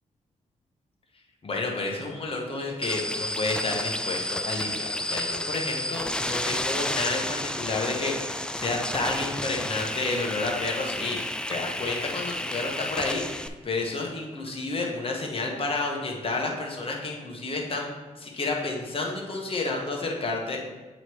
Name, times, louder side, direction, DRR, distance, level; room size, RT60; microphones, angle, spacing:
voice 1, 1.4-11.2 11.5-20.6, left 3 dB, 40° left, 0 dB, 1.3 m, -30 dB
sound 1, 2.8-13.5, left 1 dB, 5° left, 0.4 m, -31 dB
7.7 x 3.1 x 4.7 m, 1.2 s
cardioid pair, 70°, 14 cm